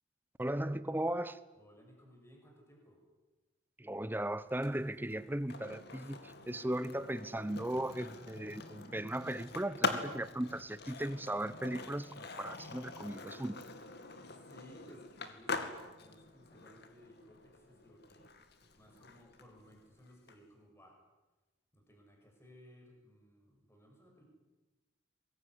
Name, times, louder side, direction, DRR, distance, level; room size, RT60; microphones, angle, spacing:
voice 1, 0.4-1.4 3.8-13.6, right 1 dB, 10° right, 0.8 m, -37 dB
voice 2, 1.6-3.0 14.2-18.3 18.6-21.0 21.7-24.2, equal, 15° left, 6.9 m, -59 dB
Skateboard, 4.5-20.4, left 3 dB, 55° left, 2.3 m, -44 dB
24.0 x 21.5 x 9.8 m
head